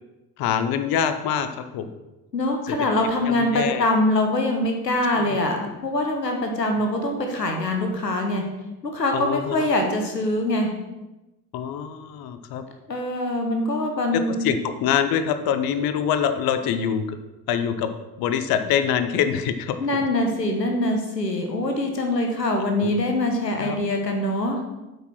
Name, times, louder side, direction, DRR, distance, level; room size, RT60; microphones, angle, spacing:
voice 1, 0.4-1.9 3.3-3.8 5.1-5.4 9.1-9.7 11.5-12.6 14.1-17.0 17.5-17.9 18.2-19.8 22.8-22.9 23.6-23.8, left 8 dB, 50° left, 10 dB, 0.8 m, -24 dB
voice 2, 2.3-8.4 8.8-10.7 12.9-14.4 19.8-24.6, left 1 dB, 90° left, 3 dB, 1.0 m, -23 dB
8.1 x 4.9 x 6.0 m, 1.0 s
figure-of-eight pair, 50°, 48 cm